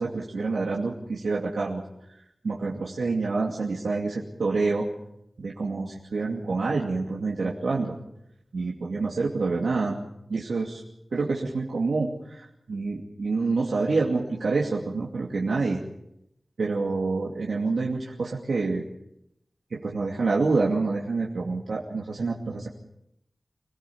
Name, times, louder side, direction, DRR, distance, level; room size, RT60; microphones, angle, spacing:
voice 1, 0.0-1.8 2.4-4.9 5.4-8.0 8.5-10.0 10.3-10.8 11.1-15.8 16.6-18.8 19.7-22.7, right 3 dB, 90° right, -3 dB, 2.6 m, -27 dB
26.5 x 17.5 x 7.2 m, 0.81 s
wide cardioid pair, 90°, 0 cm